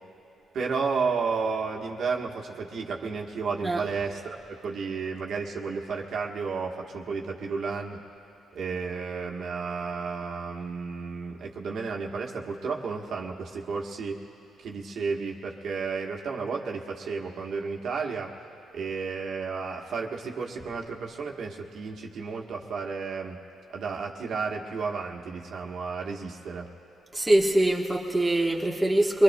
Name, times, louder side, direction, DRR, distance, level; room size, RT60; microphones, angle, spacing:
voice 1, 0.5-8.0 8.5-14.2 14.6-18.4 18.7-23.4 23.7-26.7, right 5 dB, 65° right, -1 dB, 1.2 m, -32 dB
voice 2, 27.1-29.2, right 1 dB, 10° right, -1 dB, 1.2 m, -23 dB
24.0 x 21.0 x 2.2 m, 2.9 s
cardioid pair, 90°, 0 cm